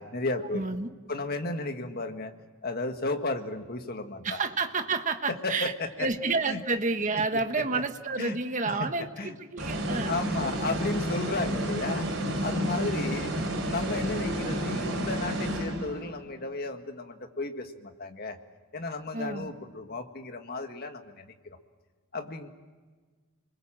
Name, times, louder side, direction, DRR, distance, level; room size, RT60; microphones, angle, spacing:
voice 1, 0.0-0.7 1.1-2.3 2.6-4.4 5.3-6.1 6.5-6.6 7.3-7.8 8.2-8.4 8.7-9.3 10.1-12.1 12.4-13.3 13.6-18.4 18.7-21.6 22.1-22.5, left 2 dB, 45° left, 6 dB, 1.8 m, -34 dB
voice 2, 0.5-0.9 4.2-5.7 6.0-10.2 12.6-13.0 19.1-19.5, right 3 dB, 35° right, 7 dB, 1.3 m, -30 dB
sound 1, 9.6-16.2, equal, 55° right, 5.6 m, -31 dB
30.0 x 21.5 x 7.5 m, 1.4 s
head